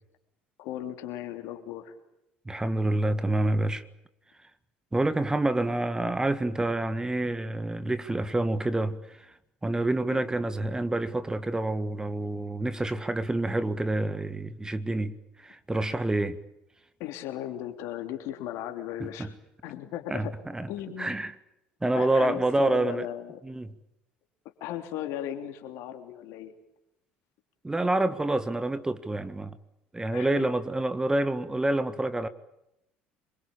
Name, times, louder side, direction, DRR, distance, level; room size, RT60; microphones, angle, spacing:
voice 1, 0.6-1.9 10.1-10.2 17.0-19.3 19.6-20.3 20.7-21.2 21.9-23.4 24.6-26.5 30.1-30.5, left 11 dB, 65° left, 7 dB, 3.2 m, -36 dB
voice 2, 2.4-3.8 4.9-9.3 9.6-16.4 19.0-19.3 20.1-20.7 21.0-21.3 21.8-23.1 23.4-23.7 27.6-29.6 29.9-32.3, right 2 dB, 15° right, 12 dB, 1.7 m, -28 dB
25.5 x 23.0 x 8.7 m, 0.84 s
hypercardioid pair, 65°, 5 cm